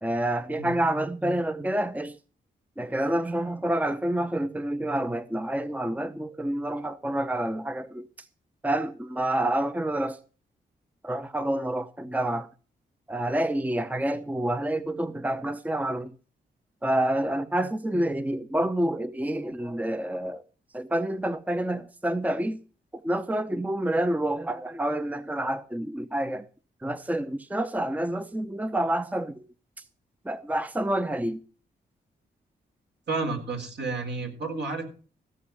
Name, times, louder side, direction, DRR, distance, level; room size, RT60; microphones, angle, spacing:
voice 1, 0.0-2.1 2.8-8.0 8.6-10.2 11.0-12.5 13.1-16.1 16.8-20.4 20.7-22.6 23.0-26.4 26.8-29.3 30.3-31.4, right 1 dB, 10° right, 0.8 m, -28 dB
voice 2, 33.1-34.8, right 3 dB, 65° right, 3.9 m, -31 dB
15.5 x 6.2 x 7.3 m
supercardioid pair, 55°, 20 cm